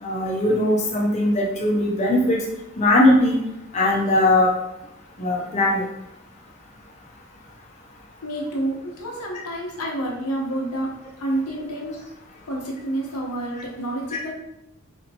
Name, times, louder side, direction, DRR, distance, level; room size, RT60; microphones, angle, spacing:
voice 1, 0.0-2.4 2.8-3.4 3.7-4.5 5.2-5.8, left 1 dB, 30° left, -3 dB, 0.5 m, -19 dB
voice 2, 8.2-10.9 11.2-11.9 12.5-14.3, right 1 dB, 85° left, -1 dB, 0.9 m, -28 dB
4.2 x 2.8 x 2.7 m, 0.86 s
head